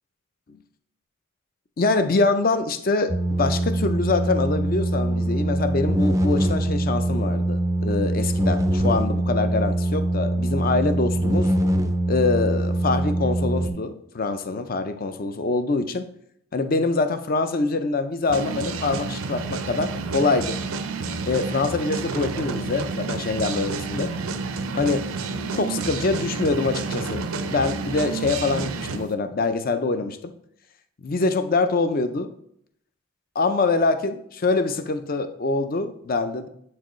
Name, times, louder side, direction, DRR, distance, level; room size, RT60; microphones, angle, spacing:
voice 1, 1.8-3.1 3.4-11.5 12.1-16.0 16.5-20.6 21.3-24.1 24.7-25.0 25.5-30.3 31.0-32.3 33.4-36.5, left 3 dB, 45° left, 10 dB, 0.5 m, -24 dB
sound 1, 3.1-13.7, right 1 dB, 15° right, 0.4 m, -23 dB
sound 2, 18.3-29.1, right 4 dB, 80° right, 0.5 m, -30 dB
8.4 x 4.6 x 3.0 m, 0.71 s
head